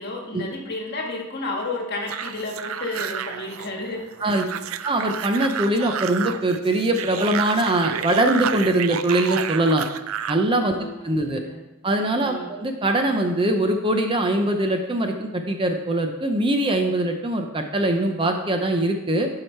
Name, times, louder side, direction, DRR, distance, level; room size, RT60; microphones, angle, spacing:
voice 1, 0.0-4.7 10.6-10.9 11.3-11.7 12.2-12.6, left 2 dB, 50° left, 0 dB, 1.6 m, -32 dB
sound 1, 2.1-10.5, right 9 dB, 70° right, 0.4 m, -31 dB
voice 2, 4.8-9.9 10.3-11.4 11.8-19.3, right 1 dB, 25° right, 4 dB, 0.6 m, -22 dB
11.5 x 4.8 x 4.5 m, 1.0 s
head